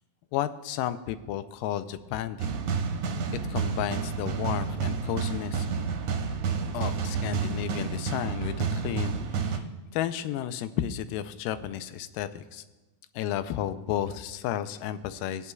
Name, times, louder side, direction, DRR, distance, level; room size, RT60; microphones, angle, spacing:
voice 1, 0.3-2.6 3.5-5.7 6.7-9.7 9.9-12.6 13.2-15.5, left 11 dB, 90° left, 12 dB, 2.2 m, -32 dB
sound 1, 2.4-9.6, right 5 dB, 70° right, 1.6 m, -30 dB
18.5 x 9.4 x 2.3 m, 1.1 s
omnidirectional pair, 3.8 m